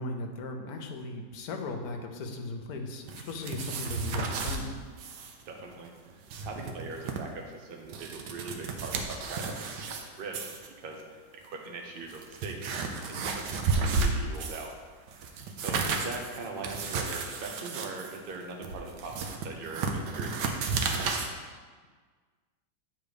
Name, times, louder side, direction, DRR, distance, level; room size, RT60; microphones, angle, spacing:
voice 1, 0.0-4.8, left 2 dB, 65° left, 4 dB, 1.1 m, -37 dB
sound 1, 3.1-4.6 5.0-5.3 5.6-5.7 6.1-7.2 7.7-10.0 10.3-10.7 11.4-11.5 12.0-14.7 15.1-21.3, right 4 dB, 75° right, 1.3 m, -33 dB
voice 2, 5.5-10.5 10.8-12.6 13.1-14.7 15.6-20.5, right 3 dB, 45° right, 2 dB, 0.7 m, -41 dB
8.0 x 3.8 x 5.0 m, 1.5 s
omnidirectional pair, 1.9 m